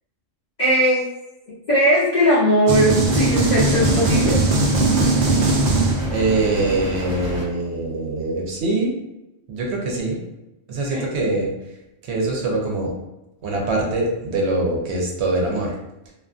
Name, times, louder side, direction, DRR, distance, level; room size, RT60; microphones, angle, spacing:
voice 1, 0.6-1.1 1.5-4.4 10.9-11.1, equal, 50° left, -7 dB, 0.5 m, -19 dB
sound 1, 2.7-6.4, right 2 dB, 85° right, 0.4 m, -19 dB
sound 2, 3.1-7.5, right 1 dB, 40° right, 0.9 m, -29 dB
voice 2, 6.1-8.9 9.5-10.2 10.7-11.5 12.0-12.9 13.4-15.7, right 2 dB, 65° right, -1 dB, 0.8 m, -23 dB
2.4 x 2.4 x 2.3 m, 0.94 s
omnidirectional pair, 1.3 m